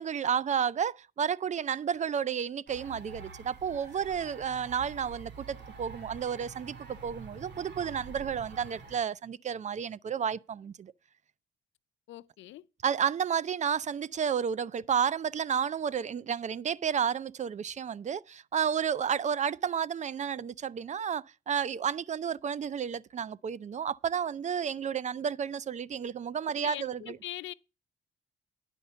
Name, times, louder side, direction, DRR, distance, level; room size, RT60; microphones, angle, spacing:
voice 1, 0.0-10.9 12.8-27.2, right 7 dB, 35° right, 0.5 m, -31 dB
sound 1, 2.7-9.0, right 4 dB, 60° right, 2.1 m, -47 dB
voice 2, 12.1-12.6 26.6-27.5, left 15 dB, 75° left, 0.5 m, -42 dB
10.0 x 5.3 x 6.8 m
cardioid pair, 90°, 20 cm